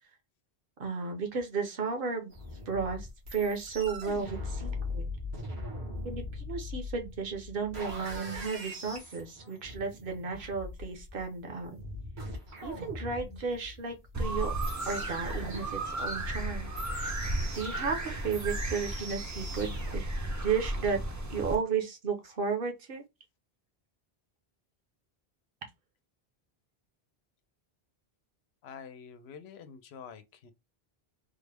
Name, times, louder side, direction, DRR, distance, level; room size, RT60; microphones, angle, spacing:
voice 1, 0.8-2.3 2.7-5.0 6.0-11.8 12.6-14.5 14.9-20.1 20.4-21.0 21.3-23.0, right 5 dB, 60° right, 0.9 m, -34 dB
sound 1, 2.3-20.0, left 1 dB, 85° right, 1.6 m, -41 dB
sound 2, 14.1-21.6, right 1 dB, 25° right, 0.4 m, -34 dB
voice 2, 28.6-30.5, left 7 dB, 85° left, 0.9 m, -47 dB
3.7 x 2.0 x 3.4 m
omnidirectional pair, 1.0 m